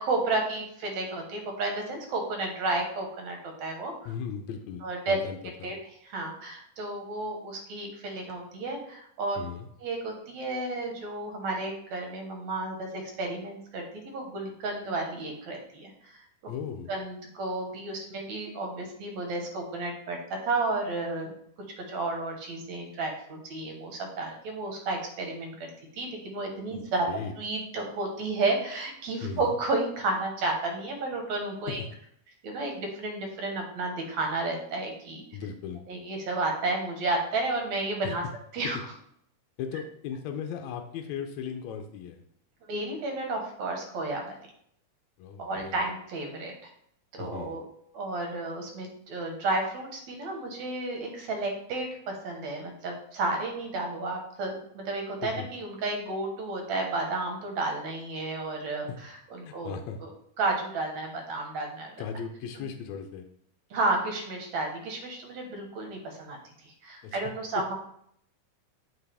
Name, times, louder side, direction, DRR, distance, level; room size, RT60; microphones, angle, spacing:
voice 1, 0.0-3.9 4.8-5.2 5.6-5.8 6.0-9.4 9.8-16.2 16.9-20.2 20.4-21.3 21.9-25.6 25.9-27.1 27.4-31.8 32.4-35.2 35.9-38.2 38.5-38.8 42.7-44.4 45.4-46.5 47.1-47.6 47.9-60.1 60.4-61.9 63.7-66.4 66.6-67.7, right 2 dB, 65° right, 2 dB, 2.3 m, -32 dB
voice 2, 4.0-5.7 9.4-9.7 16.5-16.9 26.7-26.8 27.1-27.3 29.2-29.5 31.7-31.9 35.3-35.8 38.0-38.1 39.6-42.2 45.2-45.8 47.2-47.6 55.2-55.5 58.9-59.0 59.4-60.0 62.0-63.2 67.0-67.2 67.6-67.7, left 7 dB, 75° left, 5 dB, 1.7 m, -37 dB
8.3 x 4.8 x 3.4 m, 0.68 s
omnidirectional pair, 3.7 m